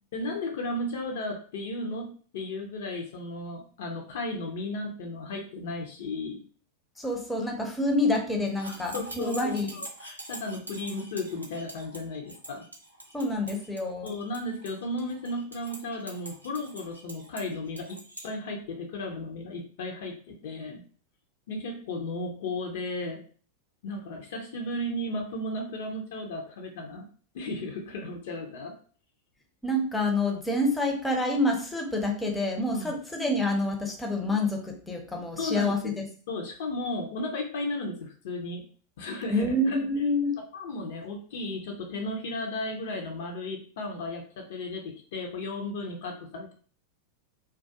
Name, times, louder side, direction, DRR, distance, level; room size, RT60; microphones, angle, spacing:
voice 1, 0.1-6.4 8.6-12.6 14.0-18.0 18.2-20.8 21.5-23.2 23.8-27.1 27.3-28.7 32.7-33.0 35.4-36.0 36.3-38.6 39.0-39.8 40.5-46.5, left 2 dB, 55° left, 2 dB, 0.5 m, -35 dB
voice 2, 7.0-9.7 13.1-14.1 29.6-36.1 39.3-40.4, left 2 dB, 10° left, 1 dB, 0.5 m, -27 dB
sound 1, 8.5-18.3, right 1 dB, 85° right, 0.5 m, -44 dB
2.3 x 2.2 x 2.6 m, 0.42 s
figure-of-eight pair, 90°, 0 cm